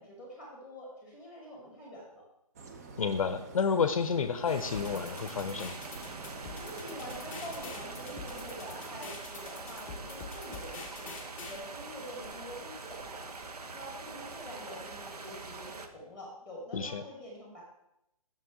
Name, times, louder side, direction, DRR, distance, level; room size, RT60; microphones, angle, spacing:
voice 1, 0.0-2.2 6.5-11.1 11.4-13.3 13.7-17.6, equal, 5° right, -3 dB, 2.0 m, -46 dB
sound 1, 2.6-9.2, right 3 dB, 25° right, 0.5 m, -48 dB
voice 2, 3.0-5.7 16.7-17.0, left 6 dB, 60° left, 10 dB, 0.5 m, -30 dB
sound 2, 4.5-15.9, right 3 dB, 80° right, 0.8 m, -44 dB
sound 3, 4.7-11.6, left 4 dB, 10° left, 0.7 m, -46 dB
6.9 x 6.0 x 3.6 m, 0.84 s
hypercardioid pair, 155°, 19 cm